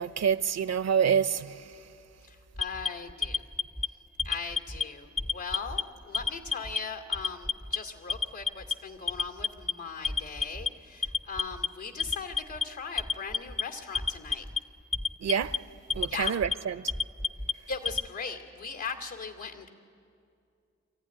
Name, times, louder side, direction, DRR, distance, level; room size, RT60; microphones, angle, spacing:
voice 1, 0.0-1.9 15.2-15.6 15.9-16.9, right 7 dB, 65° right, 0.7 m, -27 dB
voice 2, 2.2-3.4 4.2-14.5 16.1-16.3 17.7-19.7, left 5 dB, 85° left, 2.5 m, -39 dB
Alarm, 2.6-3.9 4.2-4.8 5.2-5.8 6.1-6.8 7.1-7.8 8.1-8.7 9.1-9.7 10.0-10.7 11.0-11.7 12.0-12.6 13.0-13.6 13.9-14.6 14.9-15.6 15.9-16.5 16.9-18.1, left 5 dB, ahead, 0.5 m, -29 dB
26.0 x 14.5 x 9.9 m
cardioid pair, 50°, 29 cm